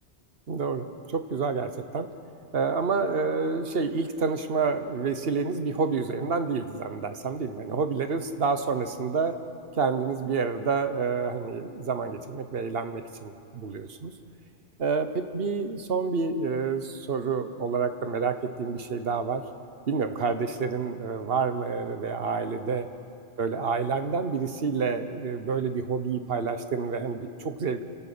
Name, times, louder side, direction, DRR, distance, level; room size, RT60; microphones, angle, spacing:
voice 1, 0.5-2.1 2.5-9.3 9.8-14.1 14.8-19.4 19.9-22.9 23.4-27.8, right 5 dB, 60° right, 9 dB, 1.3 m, -28 dB
28.5 x 13.0 x 8.5 m, 2.5 s
omnidirectional pair, 1.2 m